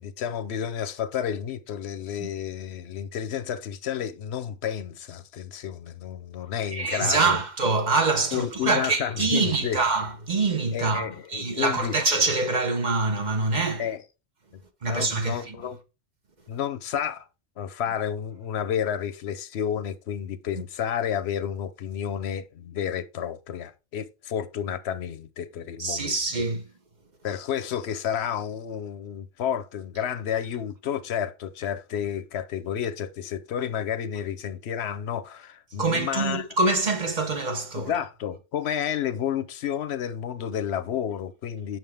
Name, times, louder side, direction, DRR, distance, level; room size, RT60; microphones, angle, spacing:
voice 1, 0.0-7.4 8.3-9.8 10.7-11.9 13.8-14.0 14.9-15.8 16.5-17.3 17.6-26.2 27.2-36.4 37.7-41.8, left 9 dB, 90° left, 1.0 m, -31 dB
voice 2, 6.7-13.9 14.8-15.6 25.8-26.6 35.8-37.9, right 3 dB, 45° right, 1.2 m, -25 dB
7.4 x 5.9 x 3.4 m
omnidirectional pair, 1.1 m